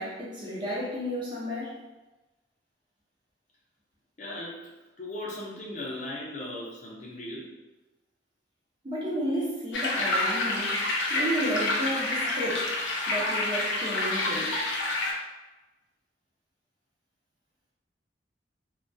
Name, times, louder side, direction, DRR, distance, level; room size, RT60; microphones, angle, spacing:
voice 1, 0.0-1.8 8.8-12.7 13.1-14.5, equal, 25° right, -7 dB, 0.6 m, -32 dB
voice 2, 4.2-7.5, left 1 dB, 40° left, -4 dB, 0.5 m, -38 dB
sound 1, 9.7-15.1, left 2 dB, 90° left, 0.5 m, -28 dB
2.2 x 2.2 x 2.5 m, 1.1 s
head